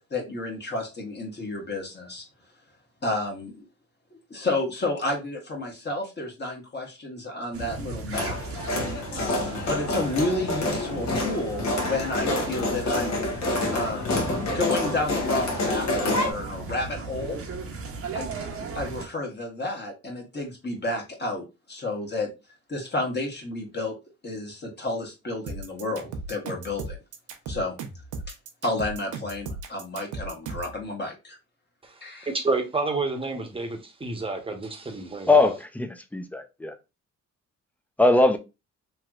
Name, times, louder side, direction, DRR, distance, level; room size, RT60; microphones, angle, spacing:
voice 1, 0.0-2.2 3.0-3.6 4.3-8.4 9.1-13.4 13.7-14.3 14.5-17.4 18.1-18.3 18.6-22.3 22.7-23.9 24.2-27.0 27.5-27.8 28.3-28.4 28.6-31.4 32.0-32.3, left 2 dB, 35° left, 1.3 m, -31 dB
sound 1, 7.5-19.1, right 4 dB, 50° right, 0.8 m, -37 dB
sound 2, 8.1-16.3, left 2 dB, 65° left, 1.1 m, -28 dB
sound 3, 25.5-30.8, right 3 dB, 80° right, 0.7 m, -36 dB
voice 2, 31.8-35.5, right 3 dB, 20° right, 0.9 m, -30 dB
voice 3, 35.3-36.7 38.0-38.4, left 2 dB, 5° left, 0.5 m, -21 dB
3.1 x 2.9 x 2.4 m
cardioid pair, 90°, 30 cm